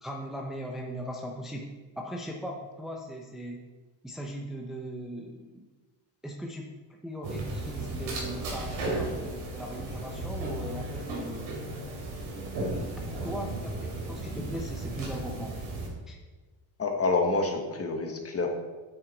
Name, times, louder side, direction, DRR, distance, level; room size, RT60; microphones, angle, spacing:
voice 1, 0.0-3.6 4.0-5.6 6.2-6.8 7.0-11.5 13.1-15.6 16.1-16.2, equal, ahead, 0 dB, 0.6 m, -39 dB
sound 1, 7.2-15.9, right 2 dB, 80° right, 2.9 m, -35 dB
voice 2, 16.8-18.5, left 3 dB, 30° left, 2 dB, 1.4 m, -27 dB
8.7 x 6.6 x 4.2 m, 1.3 s
cardioid pair, 115°, 47 cm